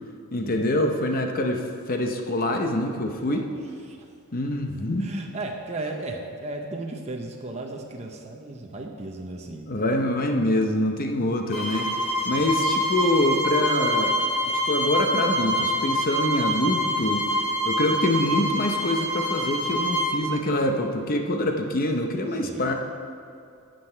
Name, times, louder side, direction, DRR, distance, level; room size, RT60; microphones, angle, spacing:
voice 1, 0.3-3.5 4.3-5.0 9.7-11.9 12.2-14.2 14.5-17.3 17.6-22.7, left 1 dB, 40° left, 4 dB, 0.7 m, -25 dB
voice 2, 5.0-9.7 12.3-12.6 22.4-22.7, right 2 dB, 30° right, 1 dB, 0.7 m, -35 dB
sound 1, 11.5-20.1, equal, 85° left, 2.6 m, -25 dB
12.0 x 7.8 x 4.5 m, 2.4 s
head